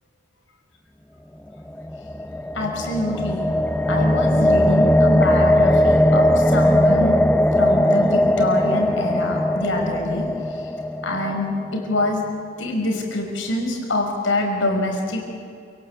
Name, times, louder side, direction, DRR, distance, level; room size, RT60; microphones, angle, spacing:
sound 1, 1.7-11.9, left 1 dB, 5° left, 0.6 m, -19 dB
voice 1, 2.5-3.4 3.9-7.2 7.6-10.3 10.5-10.6 11.0-12.3 12.6-15.2, left 2 dB, 70° left, 2 dB, 5.7 m, -25 dB
29.0 x 19.0 x 8.6 m, 2.4 s
head